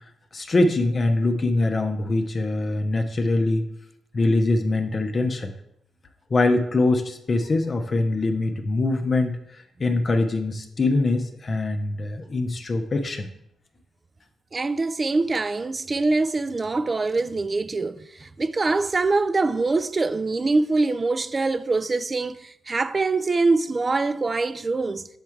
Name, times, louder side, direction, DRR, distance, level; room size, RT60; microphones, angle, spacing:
voice 1, 0.3-3.7 4.1-5.5 6.3-13.3, left 2 dB, 40° left, 0.6 m, -23 dB
voice 2, 14.5-25.1, right 3 dB, 30° right, 0.4 m, -24 dB
7.3 x 3.6 x 4.5 m
cardioid pair, 80°, 0 cm